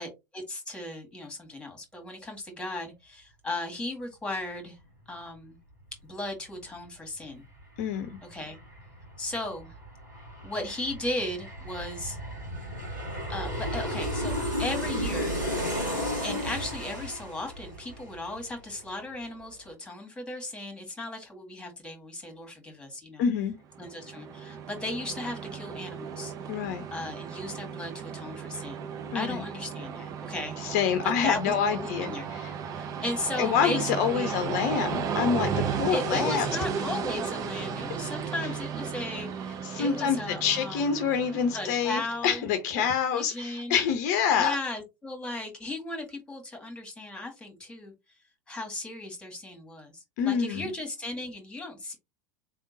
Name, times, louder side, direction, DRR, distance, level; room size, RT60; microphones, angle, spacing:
voice 1, 0.0-4.8 5.1-5.6 6.1-7.4 8.3-8.6 9.2-9.7 10.4-12.2 13.3-15.4 16.2-23.2 23.8-26.3 26.9-28.9 29.1-30.6 31.0-32.3 32.7-34.4 35.9-40.8 41.5-42.5 42.8-42.9 43.1-43.8 44.3-47.9 48.5-51.9, left 1 dB, 10° left, 1.8 m, -36 dB
Aircraft, 7.2-7.3 7.6-18.9 19.2-19.3, equal, 80° right, 2.9 m, -34 dB
voice 2, 7.8-8.1 23.2-23.6 26.5-26.8 29.1-29.4 30.6-32.5 33.4-36.5 39.6-44.6 50.2-50.7, left 7 dB, 50° left, 0.7 m, -27 dB
Train, 23.8-42.4, right 6 dB, 35° right, 0.7 m, -35 dB
4.3 x 3.6 x 2.8 m
figure-of-eight pair, 80°, 10 cm